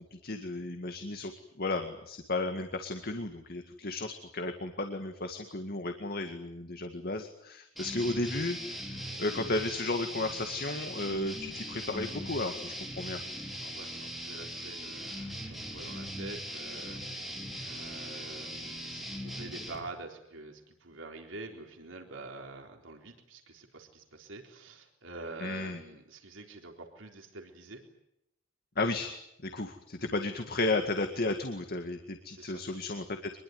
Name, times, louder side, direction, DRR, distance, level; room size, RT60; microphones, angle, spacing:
voice 1, 0.1-1.3 1.6-8.6 8.9-13.2 25.4-25.8 28.8-29.1 29.4-33.3, left 2 dB, 50° left, 6 dB, 2.1 m, -34 dB
sound 1, 7.8-19.8, equal, ahead, 4.3 m, -40 dB
voice 2, 13.6-17.4 17.6-27.9 32.3-32.6, right 2 dB, 80° right, 3 dB, 3.9 m, -46 dB
24.5 x 22.0 x 9.5 m, 0.80 s
head